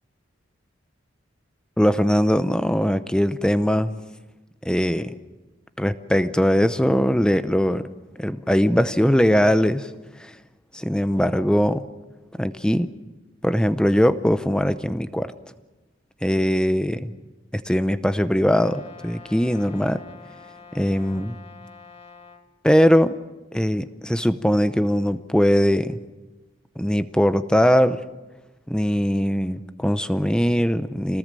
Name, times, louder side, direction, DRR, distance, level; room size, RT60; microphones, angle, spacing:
voice 1, 1.8-4.0 4.6-5.1 5.8-7.8 8.2-9.9 10.2-10.3 10.7-11.8 12.4-12.9 13.4-15.3 16.2-17.1 17.5-20.0 20.7-21.4 22.6-23.2 23.5-26.0 26.8-28.0 28.7-31.2, equal, 5° left, 12 dB, 0.7 m, -20 dB
Brass instrument, 18.5-22.5, left 5 dB, 25° left, 1.8 m, -46 dB
26.5 x 19.0 x 7.6 m, 1.1 s
head